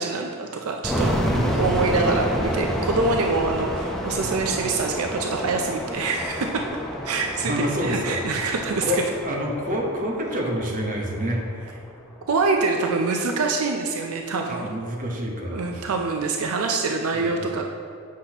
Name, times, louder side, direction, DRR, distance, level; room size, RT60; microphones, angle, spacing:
voice 1, 0.0-1.1 1.5-6.6 7.0-7.5 7.8-9.0 12.3-14.8 15.5-17.6, right 3 dB, 80° right, 2 dB, 0.5 m, -25 dB
sound 1, 0.8-11.7, equal, ahead, 0.7 m, -29 dB
voice 2, 1.3-1.6 7.4-8.4 8.8-11.8 12.8-12.9 14.5-15.8, equal, 40° right, 0 dB, 1.0 m, -28 dB
8.3 x 5.8 x 2.9 m, 2.3 s
head